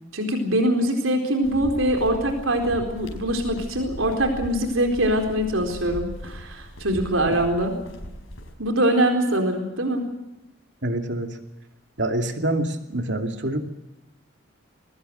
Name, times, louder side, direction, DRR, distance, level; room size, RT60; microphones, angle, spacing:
voice 1, 0.1-7.7 8.6-10.1, right 1 dB, 90° right, 4 dB, 4.2 m, -23 dB
sound 1, 1.4-8.5, equal, 90° left, 5.3 m, -38 dB
voice 2, 10.8-11.3 12.0-13.7, right 1 dB, 60° right, 5 dB, 2.6 m, -26 dB
22.0 x 20.0 x 7.9 m, 0.98 s
head